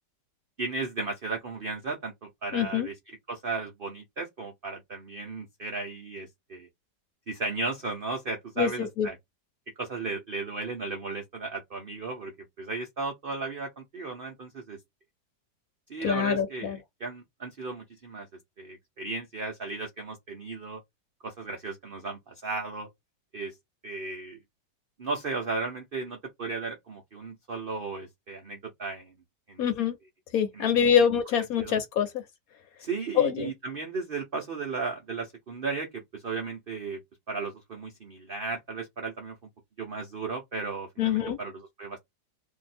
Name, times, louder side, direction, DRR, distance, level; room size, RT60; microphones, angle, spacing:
voice 1, 0.6-2.9 3.3-6.7 7.3-9.2 9.8-14.8 15.9-18.3 18.6-20.8 21.2-22.9 23.3-23.5 23.8-24.4 25.0-29.1 29.5-29.7 30.6-30.7 31.6-31.7 32.8-37.0 37.3-39.4 39.8-42.0, right 3 dB, 65° right, 0.5 m, -35 dB
voice 2, 2.5-2.9 8.6-9.1 16.0-16.8 29.6-30.0 30.3-32.2 33.1-33.5 41.0-41.4, left 8 dB, 60° left, 1.1 m, -25 dB
2.7 x 2.5 x 4.1 m
omnidirectional pair, 1.9 m